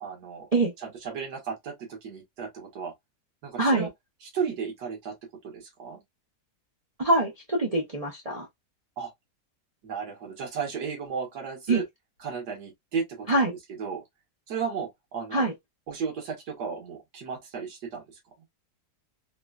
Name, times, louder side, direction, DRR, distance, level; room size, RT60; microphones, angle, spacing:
voice 1, 0.0-0.5 0.8-2.9 3.4-3.9 4.3-5.1 5.4-6.0 9.0-9.1 9.8-11.8 12.2-14.0 14.5-15.4 15.9-18.0, right 6 dB, 70° right, 1.7 m, -34 dB
voice 2, 3.6-3.9 7.0-8.5 11.7-11.8 13.3-13.5 15.3-15.5, right 2 dB, 50° right, 0.4 m, -24 dB
3.7 x 2.1 x 2.3 m
omnidirectional pair, 1.8 m